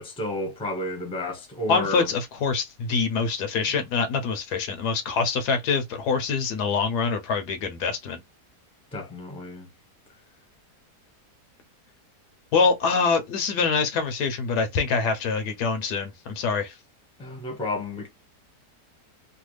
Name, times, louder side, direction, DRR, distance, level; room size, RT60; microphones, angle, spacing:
voice 1, 0.0-2.1 8.9-9.7 17.2-18.1, left 1 dB, 5° left, 0.7 m, -31 dB
voice 2, 1.7-8.2 12.5-16.8, left 5 dB, 75° left, 1.3 m, -25 dB
3.1 x 2.3 x 3.1 m
omnidirectional pair, 1.8 m